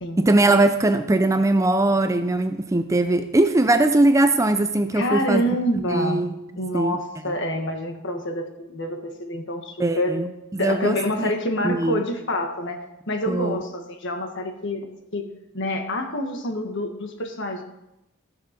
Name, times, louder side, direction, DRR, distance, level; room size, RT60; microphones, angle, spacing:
voice 1, 0.2-6.3 6.7-7.0 9.8-10.3 10.5-11.3 11.6-12.0 13.3-13.6, right 2 dB, 15° right, 8 dB, 0.4 m, -20 dB
voice 2, 4.9-6.2 6.5-10.2 10.6-12.8 13.1-15.3 15.5-17.6, left 1 dB, 55° left, 4 dB, 1.6 m, -27 dB
13.5 x 6.9 x 5.2 m, 0.89 s
head